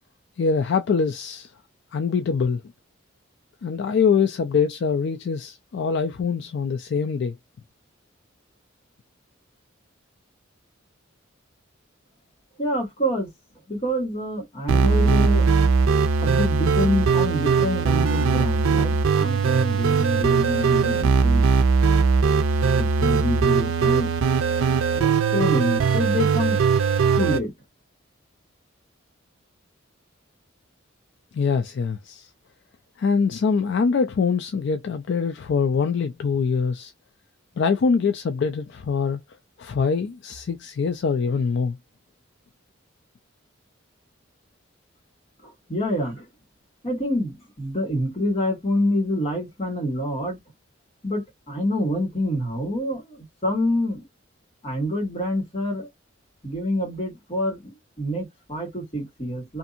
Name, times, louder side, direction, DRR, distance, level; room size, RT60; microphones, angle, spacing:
voice 1, 0.4-1.5 1.9-2.6 3.6-7.4 31.3-32.3 33.0-36.9 37.6-39.2 39.6-41.8, left 5 dB, 60° left, 0.3 m, -23 dB
voice 2, 12.6-13.3 13.7-15.5 16.2-21.4 22.8-24.1 24.9-26.6 27.2-27.5 45.4-46.2 46.8-50.4 51.0-54.0 54.6-55.9 56.4-59.6, left 1 dB, 30° left, 1.5 m, -26 dB
sound 1, 14.7-27.4, right 5 dB, 90° right, 0.4 m, -20 dB
2.6 x 2.5 x 2.5 m
head